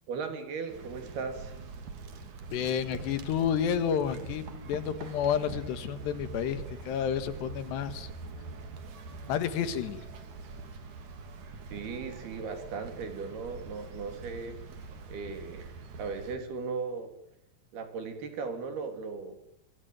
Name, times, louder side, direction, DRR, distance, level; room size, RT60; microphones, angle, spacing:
voice 1, 0.1-1.5 11.7-14.6 15.1-17.1 17.7-19.4, right 5 dB, 65° right, 7 dB, 5.2 m, -37 dB
sound 1, 0.7-16.4, right 4 dB, 50° right, 3.6 m, -44 dB
voice 2, 2.5-8.1 9.3-10.0, left 8 dB, 80° left, 12 dB, 3.8 m, -30 dB
24.5 x 24.0 x 9.4 m, 0.78 s
omnidirectional pair, 4.9 m